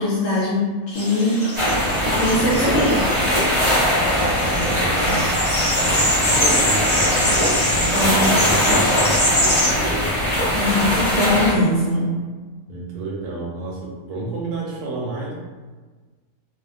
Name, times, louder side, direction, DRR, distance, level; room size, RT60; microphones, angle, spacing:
voice 1, 0.0-1.4 2.0-3.1 7.9-8.4 10.5-12.1, left 1 dB, 65° left, -6 dB, 0.8 m, -21 dB
sound 1, 0.9-10.1, left 1 dB, 35° left, 1.1 m, -25 dB
sound 2, 1.6-11.5, equal, 30° right, 0.6 m, -20 dB
voice 2, 4.3-5.3 5.8-10.1 10.8-11.1 12.7-15.3, right 3 dB, 80° right, -3 dB, 1.2 m, -30 dB
2.6 x 2.2 x 2.3 m, 1.4 s
omnidirectional pair, 1.7 m